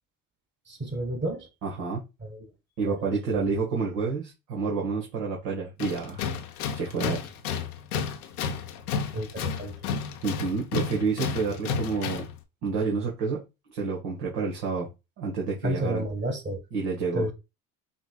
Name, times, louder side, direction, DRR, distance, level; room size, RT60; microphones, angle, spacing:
voice 1, 0.7-1.5 2.2-2.5 2.8-3.4 9.1-9.7 15.6-16.6 17.1-17.3, right 1 dB, 25° right, 1.7 m, -31 dB
voice 2, 1.6-2.0 2.8-6.2 6.7-7.2 10.2-12.3 12.6-13.4 13.7-14.9 15.2-16.0 16.7-17.3, right 4 dB, 70° right, 1.7 m, -29 dB
Tools, 5.8-12.4, left 6 dB, 85° left, 0.7 m, -32 dB
5.8 x 3.2 x 2.3 m
hypercardioid pair, 60°, 43 cm